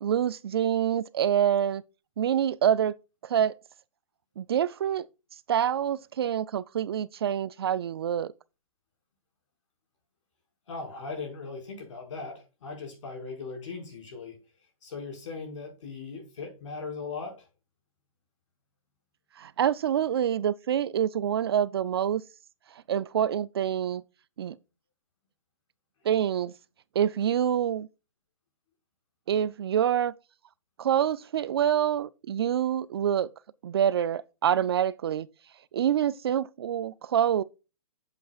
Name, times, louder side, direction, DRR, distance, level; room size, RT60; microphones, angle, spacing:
voice 1, 0.0-1.8 2.2-3.0 3.2-3.5 4.4-5.1 5.5-8.3 19.4-22.2 22.9-24.0 24.4-24.6 26.0-26.5 27.0-27.9 29.3-30.1 30.8-33.3 33.6-35.3 35.7-37.4, right 9 dB, 45° right, 0.4 m, -26 dB
voice 2, 10.7-14.4 14.8-17.5, left 4 dB, 60° left, 4.9 m, -39 dB
8.1 x 7.5 x 2.3 m
hypercardioid pair, 155°, 18 cm